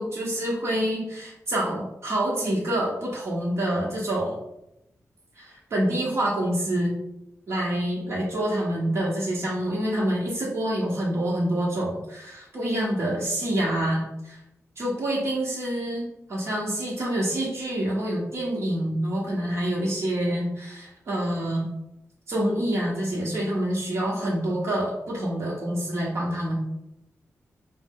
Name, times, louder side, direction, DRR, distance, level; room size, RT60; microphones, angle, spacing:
voice 1, 0.0-4.4 5.4-7.0 7.5-14.4 14.8-21.7 22.3-26.5, right 1 dB, 60° right, -5 dB, 1.0 m, -27 dB
4.6 x 2.0 x 3.6 m, 0.85 s
wide cardioid pair, 170°, 5 cm